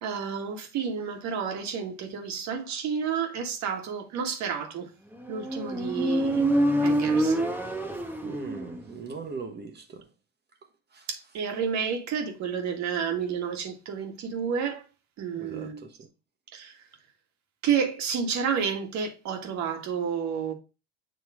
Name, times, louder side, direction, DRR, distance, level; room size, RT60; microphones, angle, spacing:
voice 1, 0.0-4.9 5.3-6.5 6.8-7.4 11.1-14.8 15.2-15.8 16.5-16.8 17.6-20.5, right 7 dB, 55° right, 1.7 m, -30 dB
Motorcycle, 5.3-8.9, right 1 dB, 5° right, 1.0 m, -26 dB
voice 2, 8.2-10.1 10.9-11.1 15.3-16.1, right 4 dB, 30° right, 1.3 m, -40 dB
7.2 x 3.0 x 4.8 m
hypercardioid pair, 85°, 34 cm